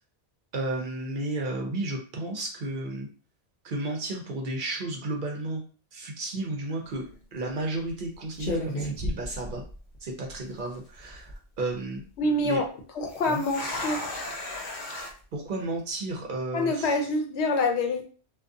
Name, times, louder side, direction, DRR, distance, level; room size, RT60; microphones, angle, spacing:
voice 1, 0.5-3.1 3.6-5.6 5.9-7.0 7.3-9.6 10.0-12.0 12.4-12.6 13.2-13.4 15.3-17.0, right 2 dB, 55° right, 2 dB, 0.7 m, -33 dB
sound 1, 6.8-7.1 7.9-8.1 8.4-10.0 10.3-10.4 11.0-11.4 13.1-15.1, left 1 dB, 50° left, 0.7 m, -34 dB
voice 2, 12.2-12.6 13.0-14.0 16.5-18.0, left 2 dB, 85° left, 4 dB, 0.9 m, -26 dB
2.4 x 2.3 x 2.5 m, 0.39 s
omnidirectional pair, 1.1 m